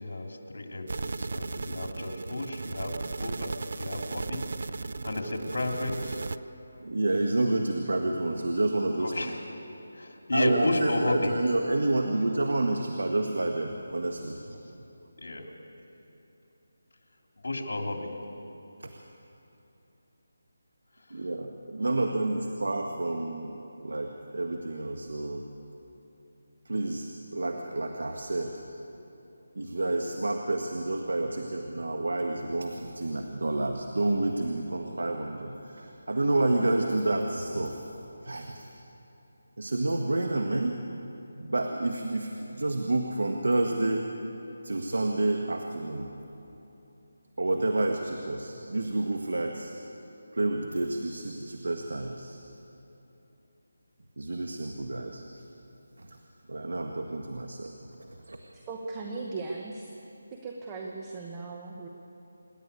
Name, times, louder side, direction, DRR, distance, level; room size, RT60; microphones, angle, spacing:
voice 1, 0.0-4.4 4.8-6.4 9.0-9.4 9.9-11.3 15.2-15.5 17.4-18.1 21.0-21.3, left 2 dB, 75° left, 2 dB, 3.1 m, -33 dB
sound 1, 0.9-6.4, right 3 dB, 50° right, 0.5 m, -36 dB
voice 2, 6.8-9.3 10.3-14.6 18.8-18.9 21.1-25.4 26.6-28.6 29.5-37.9 38.2-38.7 39.6-40.8 41.4-44.1 44.6-46.1 47.4-49.7 50.3-52.4 54.2-55.3 56.0-56.2 56.5-57.7 58.0-58.4, right 2 dB, 90° right, 4 dB, 1.6 m, -29 dB
voice 3, 58.6-59.9 60.3-61.9, right 3 dB, 15° right, 0 dB, 1.0 m, -38 dB
27.0 x 11.5 x 8.4 m, 3.0 s
figure-of-eight pair, 175°, 0 cm